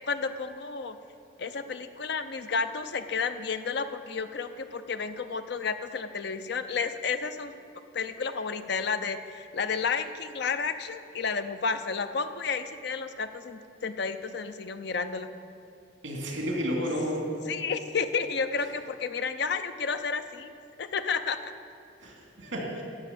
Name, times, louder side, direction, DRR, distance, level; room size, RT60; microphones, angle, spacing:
voice 1, 0.1-1.0 1.4-7.5 7.9-15.3 17.5-20.5 20.8-21.5, left 5 dB, 60° left, 10 dB, 0.6 m, -31 dB
voice 2, 16.0-17.3 22.0-22.8, equal, 80° right, -2 dB, 2.6 m, -31 dB
12.0 x 6.0 x 8.5 m, 2.5 s
head